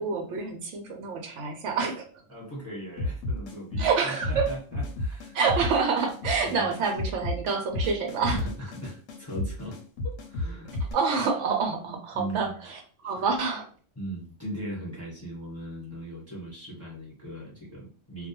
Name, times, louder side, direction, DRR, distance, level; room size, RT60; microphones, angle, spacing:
voice 1, 0.0-2.0 3.8-4.5 5.3-8.4 10.9-13.7, right 5 dB, 75° right, 3 dB, 0.9 m, -27 dB
voice 2, 2.3-5.4 6.4-6.7 8.3-10.8 12.1-12.5 13.0-13.3 14.0-18.3, right 1 dB, 10° left, -6 dB, 1.1 m, -39 dB
sound 1, 3.0-10.9, left 2 dB, 90° left, 1.0 m, -32 dB
2.3 x 2.2 x 2.9 m, 0.41 s
omnidirectional pair, 1.3 m